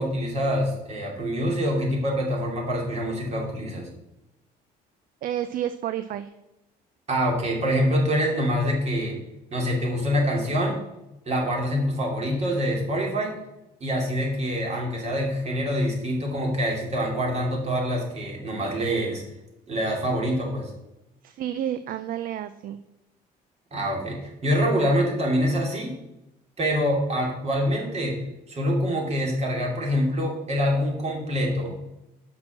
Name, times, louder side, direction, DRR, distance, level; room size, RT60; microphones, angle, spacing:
voice 1, 0.0-3.9 7.1-9.2 9.5-10.8 11.2-13.4 13.8-19.2 19.7-20.7 23.7-25.9 26.6-28.2 28.5-31.7, equal, 40° right, 0 dB, 2.8 m, -25 dB
voice 2, 5.2-6.3 21.2-22.8, right 11 dB, 55° right, 11 dB, 0.5 m, -30 dB
6.1 x 6.0 x 6.4 m, 0.94 s
cardioid pair, 110°, 17 cm